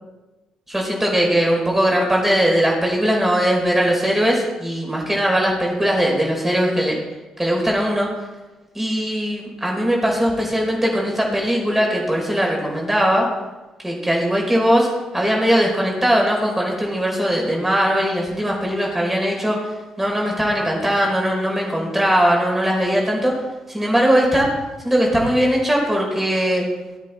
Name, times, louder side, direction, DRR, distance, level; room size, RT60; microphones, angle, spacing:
voice 1, 0.7-7.0 7.4-8.1 8.7-13.3 13.8-14.9 15.1-19.6 20.0-23.3 23.7-24.5 24.8-26.6, equal, 10° right, -2 dB, 5.0 m, -19 dB
19.0 x 8.3 x 3.6 m, 1.1 s
figure-of-eight pair, 40°, 3 cm